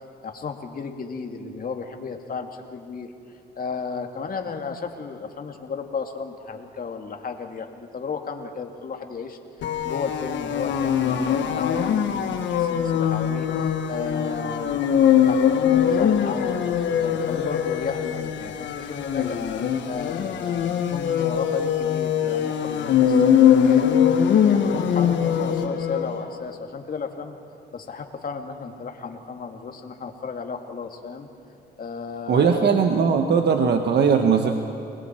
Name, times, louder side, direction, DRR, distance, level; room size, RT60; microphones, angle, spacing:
voice 1, 0.2-3.1 3.6-9.4 9.8-13.5 13.9-16.6 17.0-19.4 19.9-24.0 24.4-27.4 27.7-31.3 31.8-32.9, left 5 dB, 50° left, 4 dB, 2.2 m, -34 dB
sound 1, 9.6-26.2, left 8 dB, 80° left, 1.4 m, -22 dB
voice 2, 32.3-34.5, right 6 dB, 65° right, 5 dB, 1.3 m, -19 dB
30.0 x 20.5 x 4.5 m, 3.0 s
cardioid pair, 80°, 19 cm